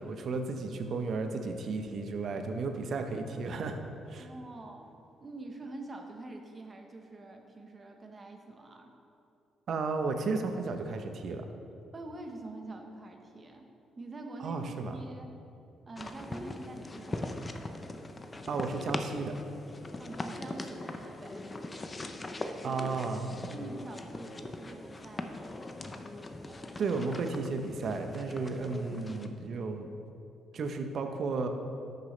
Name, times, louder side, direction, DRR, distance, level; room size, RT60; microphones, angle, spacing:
voice 1, 0.0-3.8 4.1-4.3 9.7-11.4 14.4-15.0 18.5-19.4 22.6-23.3 26.8-29.9 30.5-31.5, right 4 dB, 60° right, 6 dB, 0.8 m, -33 dB
voice 2, 4.2-4.9 5.2-8.9 11.9-13.7 14.0-15.3 15.9-17.5 20.0-21.5 23.5-25.6, right 2 dB, 35° right, 3 dB, 1.1 m, -45 dB
sound 1, 16.0-29.3, left 2 dB, 25° left, 0.6 m, -41 dB
12.5 x 6.7 x 3.3 m, 2.7 s
cardioid pair, 90°, 0 cm